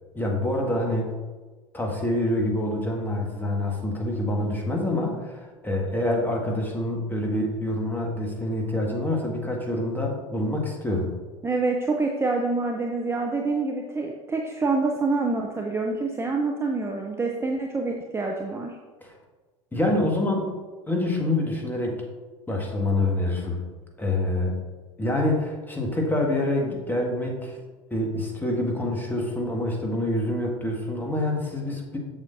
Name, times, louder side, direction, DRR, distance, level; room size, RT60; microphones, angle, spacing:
voice 1, 0.1-1.1 1.7-11.1 19.0-19.1 19.7-22.0 22.5-23.6 24.0-24.6 25.0-27.6 27.9-32.0, left 1 dB, 10° left, 0 dB, 1.7 m, -26 dB
voice 2, 11.4-18.8, right 3 dB, 15° right, 1 dB, 0.7 m, -26 dB
7.4 x 7.2 x 2.6 m, 1.3 s
figure-of-eight pair, 70°, 17 cm